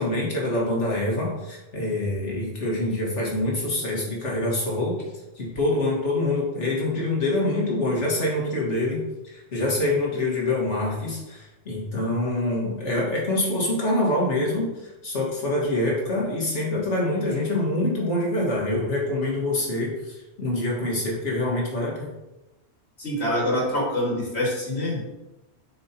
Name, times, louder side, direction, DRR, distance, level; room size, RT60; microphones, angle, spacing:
voice 1, 0.0-5.0 5.4-22.1, left 1 dB, 85° left, -3 dB, 2.1 m, -25 dB
voice 2, 23.0-25.1, left 1 dB, 65° left, -4 dB, 2.3 m, -25 dB
7.7 x 4.9 x 2.9 m, 1.0 s
omnidirectional pair, 1.2 m